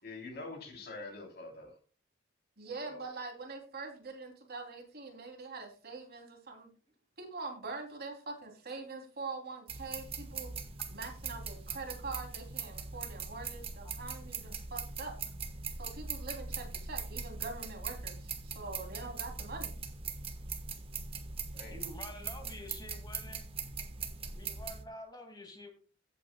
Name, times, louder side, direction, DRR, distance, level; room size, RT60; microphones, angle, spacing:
voice 1, 0.0-1.7 2.8-3.0 21.5-21.8, left 3 dB, 50° left, 2 dB, 3.5 m, -45 dB
voice 2, 2.6-6.7 7.2-10.5 10.9-15.1 15.8-19.7, right 3 dB, 50° right, 2 dB, 3.1 m, -44 dB
sound 1, 9.7-24.8, right 5 dB, 30° right, 1.3 m, -41 dB
voice 3, 21.7-23.4 24.3-25.7, left 1 dB, 20° left, 3 dB, 2.2 m, -48 dB
16.0 x 8.5 x 2.3 m, 0.37 s
head